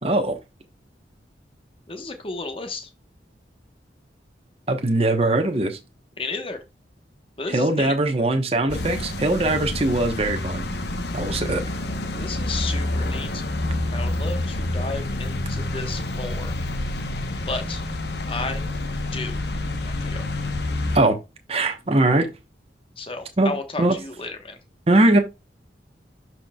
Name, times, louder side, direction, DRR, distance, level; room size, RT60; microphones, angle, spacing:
voice 1, 0.0-0.4 4.7-5.8 7.5-10.6 11.1-11.6 20.9-21.2 21.5-22.3 23.4-24.0 24.9-25.2, right 2 dB, 35° right, 1.0 m, -21 dB
voice 2, 1.9-2.9 6.2-6.6 7.4-7.9 12.2-13.4 13.9-16.5 17.5-17.8 18.3-18.7 19.1-19.4 19.9-20.2 23.0-24.6, left 3 dB, 30° left, 1.1 m, -33 dB
sound 1, 8.7-21.0, left 1 dB, 65° left, 1.0 m, -28 dB
12.0 x 4.5 x 2.3 m
head